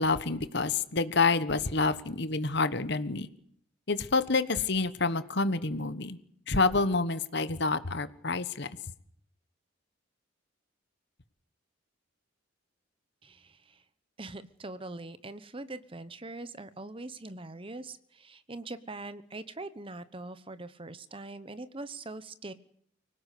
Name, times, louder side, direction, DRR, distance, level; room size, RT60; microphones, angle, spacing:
voice 1, 0.0-3.3 3.9-6.2 6.5-8.7, left 3 dB, 55° left, 13 dB, 1.3 m, -28 dB
voice 2, 14.2-18.0 18.2-22.5, right 2 dB, 25° right, 13 dB, 1.0 m, -42 dB
25.0 x 17.5 x 8.4 m, 0.68 s
head